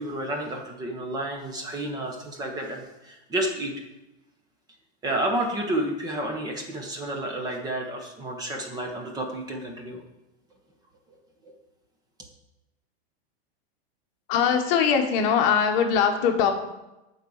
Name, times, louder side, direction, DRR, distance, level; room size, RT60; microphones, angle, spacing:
voice 1, 0.0-3.7 5.0-10.0 11.1-11.2 11.4-11.5, right 1 dB, 10° right, 2 dB, 0.7 m, -30 dB
voice 2, 14.3-16.5, left 7 dB, 35° left, 4 dB, 1.1 m, -21 dB
8.1 x 4.1 x 7.0 m, 0.98 s
supercardioid pair, 160°, 32 cm